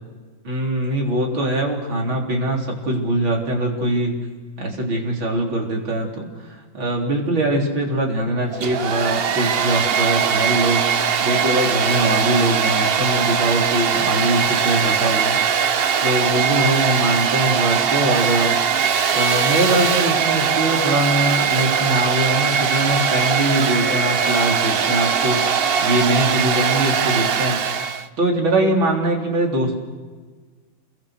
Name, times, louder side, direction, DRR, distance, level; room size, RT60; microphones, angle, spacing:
voice 1, 0.4-4.3 4.6-18.6 19.1-27.9 28.2-29.8, right 1 dB, 85° right, 0 dB, 4.5 m, -22 dB
Domestic sounds home sounds, 8.5-28.1, right 7 dB, 65° right, 0.5 m, -20 dB
28.0 x 23.0 x 6.6 m, 1.4 s
omnidirectional pair, 2.1 m